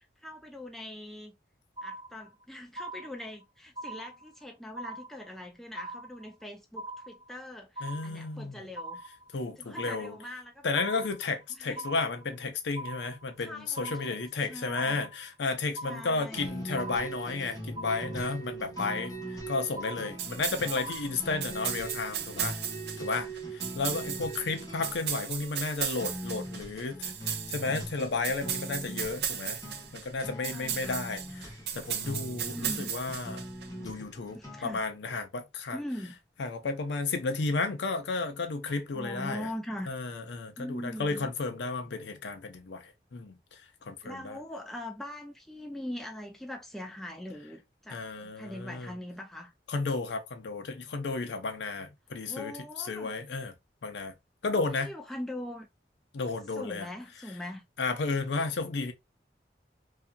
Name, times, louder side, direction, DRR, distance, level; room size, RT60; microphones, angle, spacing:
voice 1, 0.2-1.4 1.8-9.0 9.6-10.7 11.6-11.9 13.4-14.2 14.5-15.0 15.8-16.7 19.9-20.5 23.2-23.3 24.1-24.8 30.5-31.0 32.4-32.9 34.3-34.8 35.7-36.2 38.9-39.9 40.6-41.3 44.0-49.5 52.3-53.1 54.7-55.7 56.5-57.7, left 1 dB, ahead, 0.4 m, -42 dB
sound 1, 1.8-2.4 2.8-3.4 3.8-4.4 4.8-5.4 5.8-6.4 6.8-7.4 7.8-8.4 8.8-9.4 9.8-10.4 10.8-11.4 11.8-12.4 12.8-13.4 13.7-14.4 14.7-15.4 15.8-16.4 16.8-17.4 17.8-18.4 18.8-19.4 19.8-20.4 20.8-21.4, right 2 dB, 25° right, 0.8 m, -42 dB
voice 2, 7.8-8.6 9.3-10.2 10.6-22.6 23.0-29.6 29.9-31.2 31.7-33.5 33.8-35.8 36.4-39.5 39.9-44.4 47.9-48.9 49.7-52.5 52.8-53.5 53.8-54.1 54.4-54.9 56.1-56.9 57.8-58.9, left 3 dB, 85° left, 0.6 m, -33 dB
sound 2, 16.3-34.9, right 1 dB, 20° left, 0.8 m, -41 dB
sound 3, 20.2-33.7, right 9 dB, 65° right, 0.5 m, -36 dB
2.7 x 2.3 x 2.3 m
head